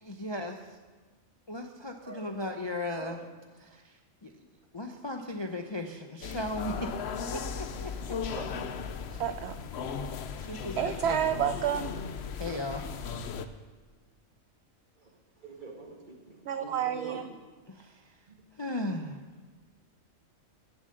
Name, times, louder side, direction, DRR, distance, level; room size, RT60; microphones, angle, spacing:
voice 1, 0.0-0.8 1.5-3.2 3.6-4.3 4.7-6.9 7.3-8.2 10.4-11.2 12.4-12.9 17.7-18.2 18.6-19.2, left 1 dB, 25° left, 4 dB, 0.6 m, -37 dB
voice 2, 2.0-2.4 3.0-3.3 8.3-8.8 15.0-17.2 18.3-18.4, right 2 dB, 35° right, 1 dB, 2.0 m, -45 dB
sound 1, 6.2-13.5, left 6 dB, 60° left, 0.9 m, -37 dB
voice 3, 9.2-9.6 10.8-11.9 16.5-17.3, right 9 dB, 65° right, 9 dB, 0.7 m, -29 dB
16.0 x 7.5 x 6.5 m, 1.4 s
omnidirectional pair, 1.4 m